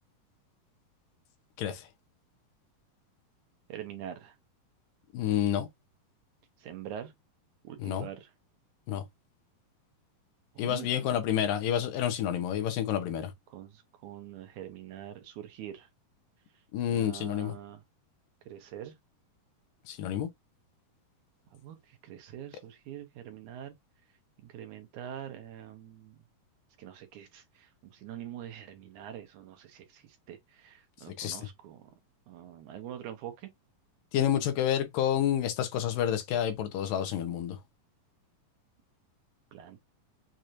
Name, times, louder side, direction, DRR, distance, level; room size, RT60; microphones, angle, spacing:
voice 1, 3.7-4.4 6.6-7.1 7.6-8.3 10.6-10.9 13.5-15.9 16.9-17.8 18.5-18.9 21.5-23.8 24.4-26.2 26.8-31.9 32.3-33.5 39.5-39.8, right 10 dB, 75° right, 2.0 m, -44 dB
voice 2, 5.1-5.7 7.8-8.1 8.9-9.0 10.6-13.3 16.7-17.5 19.9-20.3 31.2-31.5 34.1-37.6, left 10 dB, 80° left, 2.5 m, -29 dB
6.5 x 2.9 x 2.5 m
omnidirectional pair, 4.0 m